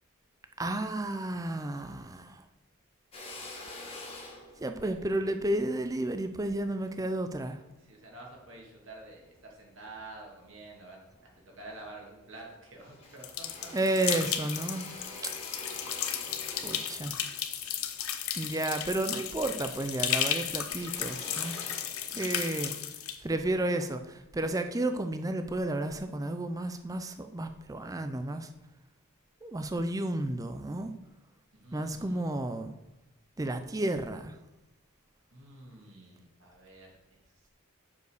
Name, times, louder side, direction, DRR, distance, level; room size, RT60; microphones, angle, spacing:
voice 1, 0.6-2.4 4.6-7.6 13.7-14.9 15.2-15.3 16.6-17.2 18.4-21.6 22.1-22.8 23.2-28.5 29.4-30.9 31.7-32.7 33.4-34.4, right 1 dB, 15° right, 8 dB, 0.4 m, -32 dB
Drill, 3.1-7.7 8.2-9.4 9.8-10.8 11.1-11.2 11.5-12.5 12.8-19.4 19.7-22.6, left 2 dB, 30° left, 1.6 m, -47 dB
voice 2, 7.9-13.5 22.1-22.2 31.5-32.3 35.3-37.2, right 2 dB, 60° right, -1 dB, 2.3 m, -49 dB
sound 1, 13.2-23.2, left 10 dB, 80° left, 0.7 m, -34 dB
6.9 x 5.1 x 6.5 m, 0.95 s
head